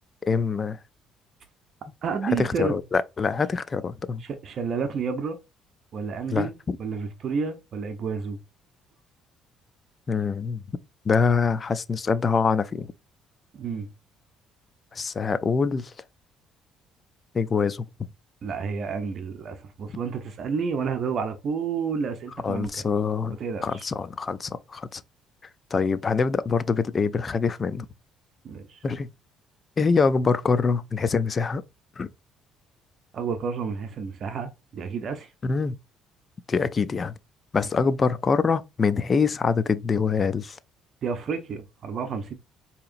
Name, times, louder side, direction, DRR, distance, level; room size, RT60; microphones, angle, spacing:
voice 1, 0.3-0.8 2.2-4.2 6.3-6.8 10.1-10.6 11.1-12.9 14.9-15.9 17.3-17.9 22.4-23.4 23.6-25.0 25.7-27.9 28.8-29.1 29.8-31.6 32.0-32.1 35.4-35.8 36.5-37.1 37.5-40.6, left 5 dB, 35° left, 0.4 m, -24 dB
voice 2, 2.0-2.8 4.2-5.4 5.9-8.4 13.5-13.9 18.4-22.8 23.4-23.8 28.4-28.8 33.1-35.3 41.0-42.3, right 5 dB, 50° right, 0.7 m, -30 dB
4.8 x 2.8 x 2.5 m
cardioid pair, 100°, 0 cm